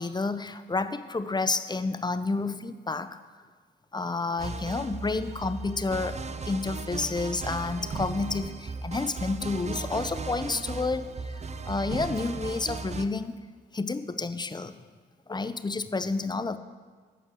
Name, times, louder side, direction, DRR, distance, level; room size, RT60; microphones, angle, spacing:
voice 1, 0.0-3.2 3.9-6.2 6.4-11.4 11.7-13.4 13.7-14.7 15.3-16.6, left 3 dB, 20° left, 12 dB, 0.5 m, -30 dB
sound 1, 4.4-13.0, right 4 dB, 35° right, 0.5 m, -36 dB
8.1 x 5.9 x 6.3 m, 1.5 s
supercardioid pair, 45°, 20 cm